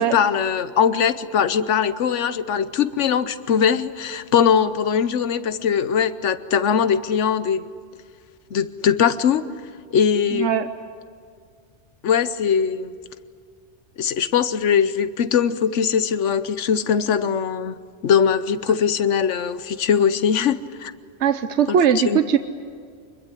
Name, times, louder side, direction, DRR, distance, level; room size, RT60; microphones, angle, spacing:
voice 1, 0.0-7.7 8.5-9.5 9.9-10.5 12.0-12.9 14.0-17.8 18.0-20.9 21.7-21.8 22.1-22.2, left 7 dB, 80° left, 14 dB, 1.2 m, -21 dB
voice 2, 10.3-10.7 21.2-22.4, right 8 dB, 75° right, 9 dB, 1.2 m, -19 dB
25.5 x 21.5 x 9.8 m, 2.1 s
omnidirectional pair, 1.2 m